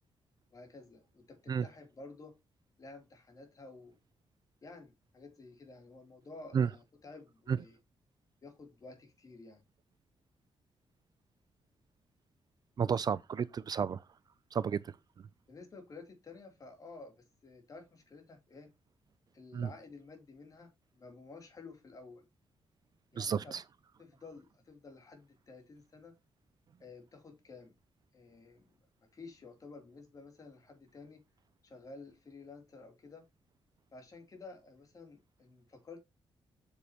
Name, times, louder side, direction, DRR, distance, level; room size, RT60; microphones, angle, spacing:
voice 1, 0.5-2.4 2.8-4.0 4.6-7.8 8.4-9.6 15.5-18.7 19.3-22.3 23.1-23.5 24.0-26.1 26.8-27.8 28.1-28.7 29.0-31.2 31.6-33.3 33.9-36.0, left 3 dB, 35° left, 3.1 m, -52 dB
voice 2, 12.8-14.0 14.5-14.8 19.5-19.7 23.2-23.6, right 7 dB, 45° right, 0.5 m, -31 dB
8.2 x 7.2 x 2.9 m
wide cardioid pair, 140°, 10 cm